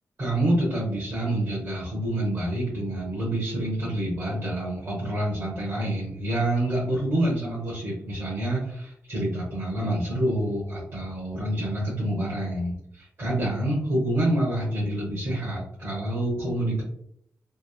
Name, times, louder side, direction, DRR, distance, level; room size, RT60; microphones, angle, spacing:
voice 1, 0.2-16.8, right 1 dB, 55° right, -6 dB, 1.2 m, -27 dB
3.4 x 2.0 x 2.4 m, 0.70 s
wide cardioid pair, 125°, 5 cm